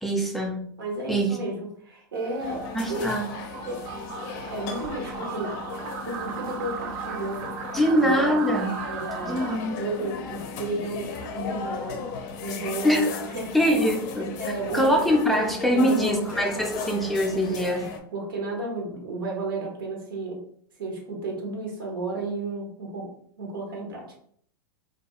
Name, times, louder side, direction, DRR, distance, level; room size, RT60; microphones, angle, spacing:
voice 1, 0.0-0.6 1.1-1.4 2.7-3.2 7.7-8.7 9.2-9.8 12.8-13.1 13.5-14.3 14.7-17.9, equal, ahead, 1 dB, 0.5 m, -23 dB
voice 2, 0.8-3.0 3.7-4.1 4.5-5.5 5.8-8.4 8.9-12.1 12.4-13.0 13.3-13.5 14.4-14.8 15.7-16.7 17.5-20.4 20.8-23.1 23.4-24.2, right 2 dB, 75° right, 0 dB, 0.9 m, -33 dB
sound 1, 2.1-9.6, right 6 dB, 55° right, 0.4 m, -37 dB
sound 2, 2.4-18.0, left 5 dB, 50° left, 0.5 m, -36 dB
2.4 x 2.2 x 2.8 m, 0.63 s
hypercardioid pair, 100°, 12 cm